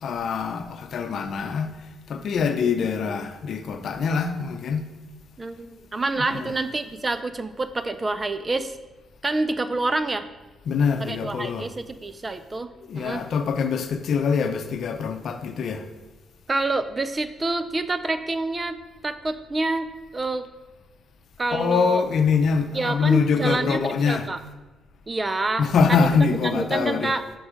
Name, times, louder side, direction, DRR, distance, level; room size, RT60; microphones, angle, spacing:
voice 1, 0.0-1.7 2.1-4.9 6.2-6.6 10.6-11.7 12.8-15.9 21.5-24.3 25.6-27.2, left 5 dB, 65° left, 0.7 m, -24 dB
voice 2, 5.4-8.7 9.2-10.2 11.0-13.2 16.5-18.8 19.0-19.9 20.1-20.5 21.4-22.0 22.7-24.4 25.1-27.2, right 2 dB, 30° right, 0.5 m, -27 dB
6.0 x 5.4 x 5.1 m
cardioid pair, 75°, 0 cm